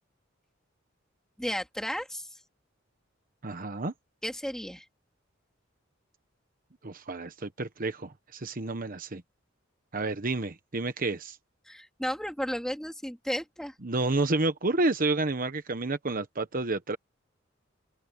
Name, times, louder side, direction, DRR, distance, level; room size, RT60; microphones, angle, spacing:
voice 1, 1.4-2.4 4.2-4.8 11.6-13.7, equal, 5° left, 3.0 m, -34 dB
voice 2, 3.4-3.9 6.8-9.2 9.9-11.4 13.8-17.0, right 2 dB, 45° right, 1.1 m, -30 dB
open air
head